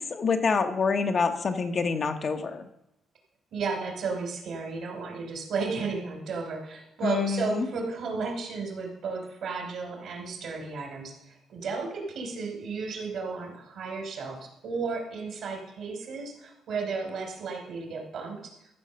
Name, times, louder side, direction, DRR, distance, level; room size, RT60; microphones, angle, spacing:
voice 1, 0.0-2.7 7.0-7.7, left 5 dB, 45° left, 6 dB, 1.1 m, -27 dB
voice 2, 3.5-18.5, right 4 dB, 70° right, 2 dB, 3.2 m, -33 dB
14.0 x 4.8 x 6.8 m, 0.85 s
cardioid pair, 90°, 0 cm